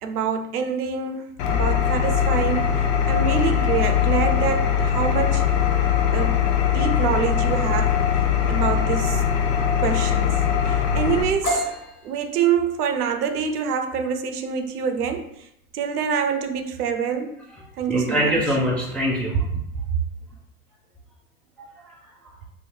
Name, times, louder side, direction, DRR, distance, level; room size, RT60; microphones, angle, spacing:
voice 1, 0.0-5.4 6.1-6.4 6.7-8.0 8.5-9.2 9.8-10.3 10.6-15.3 15.7-17.4 17.8-18.3, right 7 dB, 80° right, 6 dB, 0.6 m, -26 dB
Engine, 1.4-11.2, left 8 dB, 55° left, 0.7 m, -21 dB
sound 1, 11.4-19.1, left 1 dB, 90° left, 0.9 m, -35 dB
voice 2, 17.5-19.4 21.6-22.0 22.2-22.3, equal, 5° left, -5 dB, 0.3 m, -25 dB
2.7 x 2.7 x 3.3 m, 0.77 s
hypercardioid pair, 90°, 46 cm